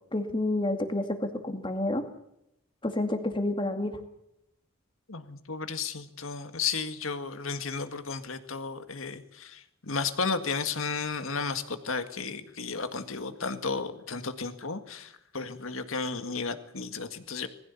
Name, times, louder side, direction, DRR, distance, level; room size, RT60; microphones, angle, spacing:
voice 1, 0.1-2.0 2.8-4.0, left 1 dB, 25° left, 5 dB, 2.3 m, -29 dB
voice 2, 5.1-17.5, left 4 dB, 75° left, 9 dB, 1.8 m, -33 dB
20.5 x 15.5 x 8.4 m, 0.80 s
head